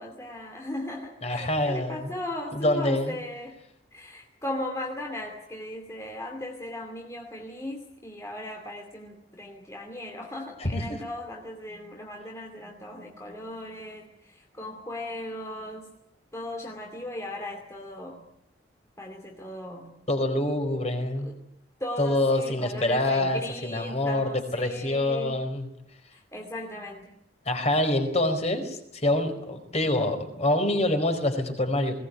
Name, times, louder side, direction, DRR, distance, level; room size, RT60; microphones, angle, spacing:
voice 1, 0.0-3.6 3.9-14.1 14.5-15.9 16.3-18.2 19.0-19.9 21.8-25.3 26.1-27.1, left 1 dB, 15° left, 1 dB, 2.5 m, -37 dB
voice 2, 1.2-2.1 2.5-3.2 10.6-11.0 20.1-21.3 22.0-25.7 27.4-32.0, left 1 dB, 35° left, 6 dB, 4.5 m, -26 dB
21.0 x 18.5 x 9.4 m, 0.82 s
head